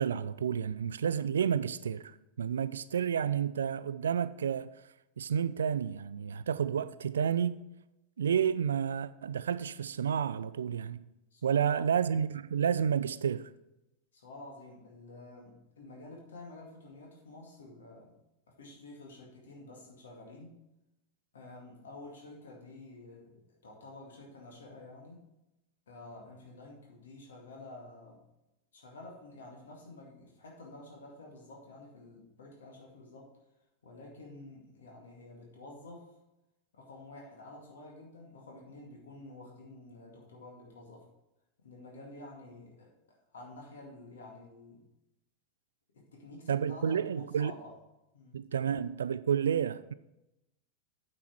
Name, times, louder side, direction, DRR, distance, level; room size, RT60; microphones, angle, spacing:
voice 1, 0.0-4.7 5.2-7.6 8.2-11.0 11.4-13.5 46.5-47.5 48.3-49.9, right 8 dB, 65° right, 0.3 m, -30 dB
voice 2, 11.3-11.9 14.1-18.1 18.5-20.6 21.3-25.3 25.9-28.2 28.7-33.3 33.8-36.1 36.7-41.1 41.6-44.8 45.9-47.8 48.1-48.7, left 2 dB, 65° left, 2.1 m, -50 dB
8.8 x 5.9 x 4.6 m
figure-of-eight pair, 90°, 0 cm